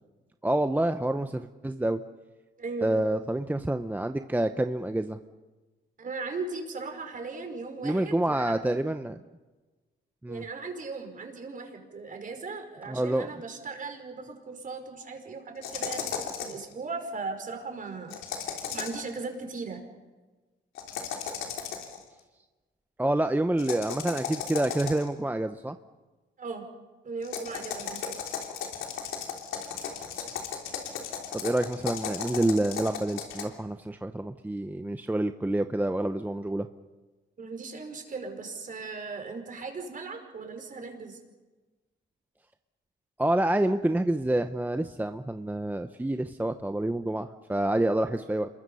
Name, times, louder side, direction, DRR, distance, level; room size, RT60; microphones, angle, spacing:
voice 1, 0.4-2.0 2.8-5.2 7.8-9.2 10.2-10.4 12.9-13.3 23.0-25.8 31.3-36.7 43.2-48.5, right 1 dB, 10° right, 8 dB, 0.8 m, -28 dB
voice 2, 2.6-3.0 6.0-8.6 10.3-18.1 18.7-19.8 26.4-26.6 27.0-28.2 37.4-41.2, right 4 dB, 40° right, 4 dB, 5.1 m, -38 dB
sound 1, 15.6-16.7 18.1-19.1 20.8-22.0 23.6-25.2 27.2-33.4, left 7 dB, 90° left, 3.4 m, -35 dB
28.0 x 22.0 x 5.6 m, 1.2 s
cardioid pair, 90°, 20 cm